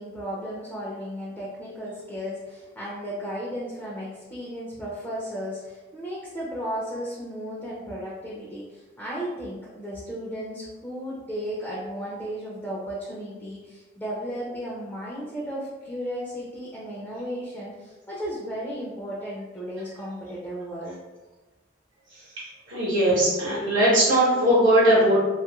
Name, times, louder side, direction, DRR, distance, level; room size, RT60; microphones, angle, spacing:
voice 1, 0.0-21.0, equal, 10° left, -6 dB, 0.4 m, -34 dB
voice 2, 22.7-25.2, right 1 dB, 60° right, -9 dB, 0.9 m, -19 dB
2.6 x 2.3 x 2.9 m, 1.2 s
head